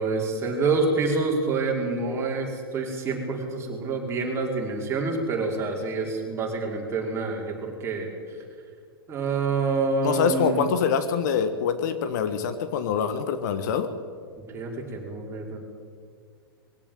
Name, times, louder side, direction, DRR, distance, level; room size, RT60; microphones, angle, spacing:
voice 1, 0.0-8.1 9.1-10.7 14.5-15.6, right 3 dB, 20° right, -1 dB, 5.1 m, -27 dB
voice 2, 10.0-13.9, left 7 dB, 50° left, 10 dB, 1.4 m, -25 dB
22.0 x 16.0 x 9.2 m, 2.1 s
figure-of-eight pair, 100°, 13 cm